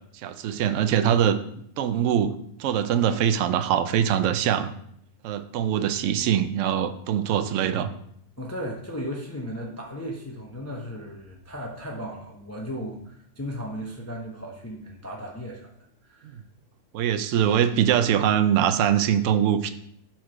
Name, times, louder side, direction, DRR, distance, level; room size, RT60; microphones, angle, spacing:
voice 1, 0.2-1.4 1.8-2.3 2.6-4.7 5.2-7.9 16.2-16.3 16.9-19.7, right 9 dB, 65° right, 10 dB, 0.8 m, -23 dB
voice 2, 8.4-15.7 16.1-16.4, equal, 15° left, -1 dB, 0.6 m, -36 dB
4.7 x 4.5 x 5.8 m, 0.69 s
omnidirectional pair, 1.6 m